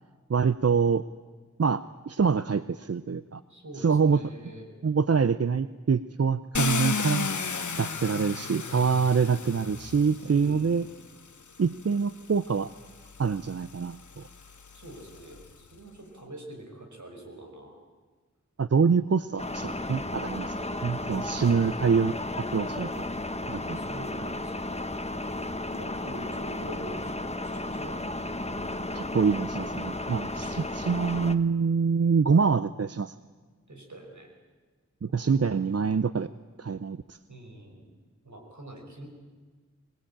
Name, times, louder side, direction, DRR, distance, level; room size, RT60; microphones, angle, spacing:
voice 1, 0.3-1.0 1.6-3.4 3.8-4.2 4.8-7.3 7.8-10.9 11.6-12.7 13.2-14.3 18.6-23.0 23.5-23.8 28.9-33.1 35.0-36.3 36.6-37.2, right 5 dB, 55° right, 14 dB, 0.6 m, -25 dB
voice 2, 3.5-4.7 10.3-11.0 14.7-17.8 21.0-21.9 23.7-24.9 25.7-28.0 30.3-30.9 33.7-34.3 35.1-35.6 37.3-37.9 38.2-39.1, right 1 dB, 80° right, 2 dB, 5.4 m, -45 dB
Car, 6.5-10.6 11.6-11.7 12.2-15.5, left 5 dB, 90° left, 1.0 m, -34 dB
sound 1, 19.4-31.3, left 2 dB, 20° left, 1.2 m, -34 dB
25.0 x 19.5 x 8.8 m, 1.4 s
wide cardioid pair, 50°, 29 cm